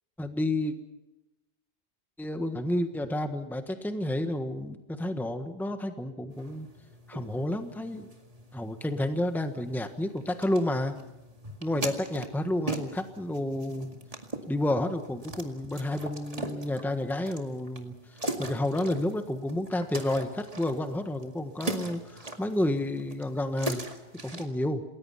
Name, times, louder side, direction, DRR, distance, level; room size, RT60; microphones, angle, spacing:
voice 1, 0.2-0.8 2.2-6.7 7.1-8.1 8.5-10.9 11.6-13.9 14.5-17.9 18.4-23.8 24.2-24.8, left 1 dB, ahead, 7 dB, 1.4 m, -30 dB
sound 1, 6.3-24.5, right 2 dB, 35° right, 2.3 m, -41 dB
28.5 x 20.5 x 5.8 m, 0.97 s
omnidirectional pair, 1.1 m